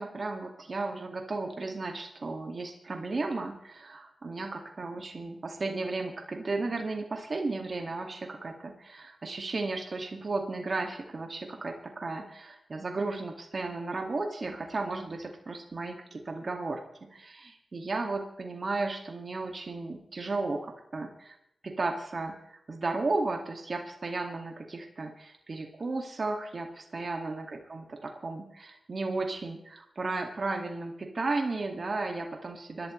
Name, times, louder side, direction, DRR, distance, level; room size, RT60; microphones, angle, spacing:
voice 1, 0.0-21.4 21.6-32.9, right 3 dB, 60° right, 2 dB, 2.0 m, -34 dB
25.5 x 12.0 x 3.2 m, 0.76 s
cardioid pair, 50°, 0 cm